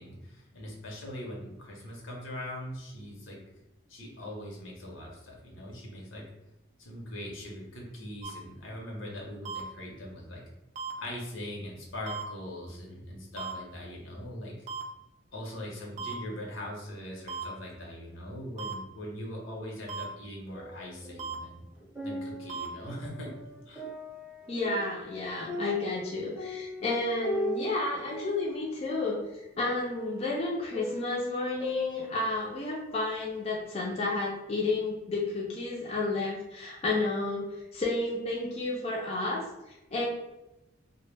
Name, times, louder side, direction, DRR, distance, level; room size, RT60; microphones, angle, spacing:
voice 1, 0.0-3.4 3.9-6.3 6.8-10.4 11.0-14.5 15.3-21.6 22.0-23.3 23.7-23.9, left 1 dB, 75° left, -1 dB, 0.7 m, -41 dB
sound 1, 8.2-8.3 9.4-9.6 10.7-10.9 12.1-12.2 13.4-13.5 14.7-14.8 16.0-16.1 17.3-17.4 18.6-18.7 19.9-20.0 21.2-21.3 22.5-22.7, right 6 dB, 40° right, 0.3 m, -36 dB
sound 2, 20.5-21.4 21.8-32.9 33.3-33.4, equal, 10° right, 0.7 m, -39 dB
voice 2, 24.5-40.0, left 2 dB, 30° left, -4 dB, 0.4 m, -31 dB
2.1 x 2.1 x 3.2 m, 0.96 s
head